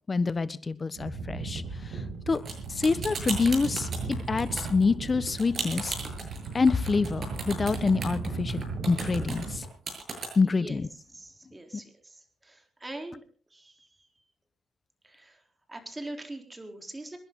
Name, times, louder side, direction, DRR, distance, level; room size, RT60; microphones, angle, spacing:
voice 1, 0.1-1.6 2.3-2.4 2.8-3.9 4.3-6.0 6.5-9.6 10.4-10.9, left 4 dB, 30° left, 15 dB, 1.3 m, -26 dB
sound 1, 1.0-9.6, right 4 dB, 70° right, 6.8 m, -36 dB
sound 2, 2.3-10.3, right 4 dB, 45° right, 7.5 m, -36 dB
voice 2, 10.4-10.8 11.1-13.2 13.5-14.1 15.0-15.4 15.7-17.2, right 1 dB, 15° right, 4 dB, 3.8 m, -43 dB
27.0 x 11.0 x 3.9 m, 0.39 s
cardioid pair, 90°, 0 cm